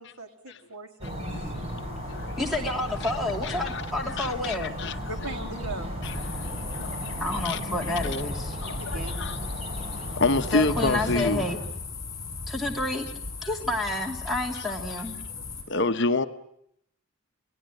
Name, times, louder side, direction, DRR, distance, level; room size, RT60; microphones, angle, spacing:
voice 1, 0.0-1.3 5.1-6.0 8.8-9.4, right 2 dB, 85° right, 2.7 m, -39 dB
sound 1, 1.0-11.5, equal, 30° right, 5.4 m, -34 dB
voice 2, 1.3-2.4 3.0-3.1 3.4-5.0 6.0-8.1 8.6-9.4 9.6-11.5 13.4-13.5 14.5-14.6 15.7-16.3, left 3 dB, 55° left, 1.0 m, -29 dB
voice 3, 2.4-4.7 7.2-8.6 10.5-11.6 12.5-13.1 13.4-15.2, left 2 dB, ahead, 3.1 m, -29 dB
sound 2, 6.0-15.6, left 4 dB, 15° left, 5.4 m, -37 dB
27.5 x 19.0 x 9.3 m
head